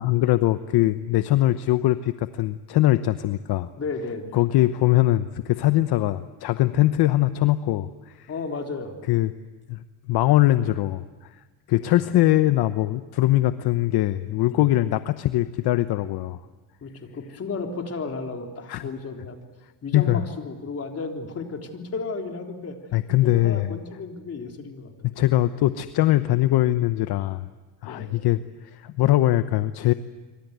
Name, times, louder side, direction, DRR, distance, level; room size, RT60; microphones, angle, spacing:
voice 1, 0.0-3.7 4.3-8.3 9.1-9.3 9.7-11.3 11.7-16.4 18.7-18.9 19.9-20.2 22.9-23.7 25.0-27.5 27.8-28.4 28.7-29.9, left 15 dB, 60° left, 11 dB, 0.9 m, -22 dB
voice 2, 3.8-4.4 8.3-9.2 11.7-11.8 14.5-14.7 16.8-19.4 19.8-22.8 23.2-25.1 27.9-28.2, left 4 dB, 35° left, 3 dB, 3.7 m, -33 dB
26.0 x 25.0 x 8.1 m, 1.3 s
cardioid pair, 125°, 44 cm